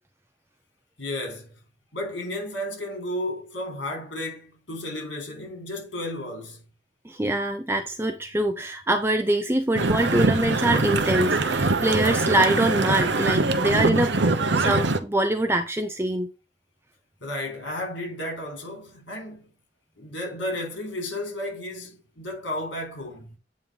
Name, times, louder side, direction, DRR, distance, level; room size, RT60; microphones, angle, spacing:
voice 1, 1.0-1.6 1.9-6.6 17.2-19.5 20.0-23.4, left 1 dB, 80° left, 4.1 m, -33 dB
voice 2, 7.0-14.2 14.5-16.3, right 1 dB, 15° right, 0.6 m, -24 dB
sound 1, 9.8-15.0, right 3 dB, 70° right, 1.0 m, -23 dB
8.8 x 3.2 x 5.2 m
head